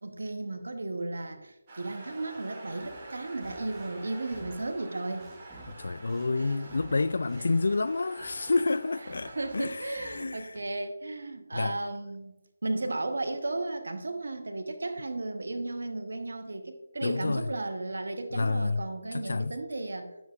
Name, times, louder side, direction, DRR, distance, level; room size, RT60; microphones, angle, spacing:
voice 1, 0.0-5.3 9.3-12.4 12.6-20.1, right 2 dB, 70° right, 1.0 m, -34 dB
sound 1, 1.7-9.6, right 2 dB, 30° right, 1.7 m, -47 dB
sound 2, 2.7-8.8 9.1-10.6, right 2 dB, 15° right, 1.1 m, -54 dB
voice 2, 5.7-10.5 11.5-11.8 17.0-17.5 18.3-18.8 19.1-19.6, left 3 dB, 65° left, 0.3 m, -29 dB
9.8 x 7.2 x 2.5 m
figure-of-eight pair, 155°, 0 cm